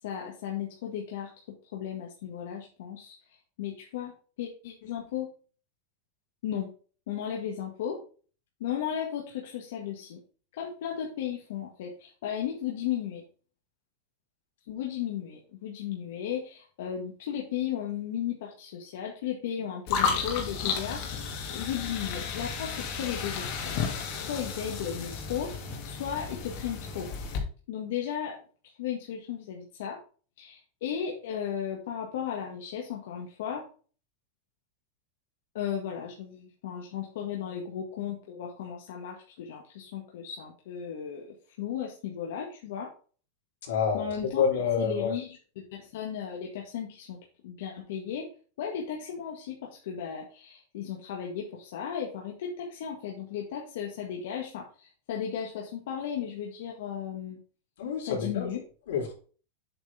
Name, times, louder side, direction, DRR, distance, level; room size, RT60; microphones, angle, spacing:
voice 1, 0.0-1.4 1.7-4.1 4.4-5.3 6.4-6.7 7.1-8.0 8.6-10.2 10.5-13.2 14.7-21.1 21.5-23.8 24.1-27.1 27.7-28.4 28.6-30.0 30.4-33.7 35.5-41.3 41.6-42.9 43.9-44.4 44.8-45.4 45.7-47.2 47.4-48.3 48.6-57.4 58.1-58.6, left 9 dB, 65° left, -1 dB, 1.8 m, -35 dB
sound 1, 19.9-27.4, left 6 dB, 40° left, 2.1 m, -33 dB
voice 2, 43.6-45.1 57.8-58.5 58.9-59.1, left 6 dB, 85° left, 0 dB, 4.1 m, -28 dB
7.9 x 6.3 x 3.5 m, 0.39 s
supercardioid pair, 175°, 0 cm